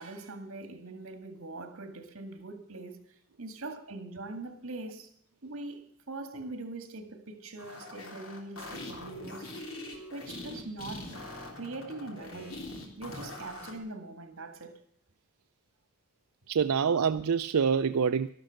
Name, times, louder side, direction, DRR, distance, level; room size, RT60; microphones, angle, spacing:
voice 1, 0.0-3.0 3.4-5.1 5.4-9.5 10.1-11.1 11.5-12.6 13.0-14.8, right 2 dB, 70° right, 2.1 m, -42 dB
sound 1, 7.6-13.8, left 2 dB, 75° left, 3.4 m, -43 dB
voice 2, 16.5-18.3, right 6 dB, 90° right, 0.5 m, -26 dB
13.0 x 12.5 x 6.5 m
head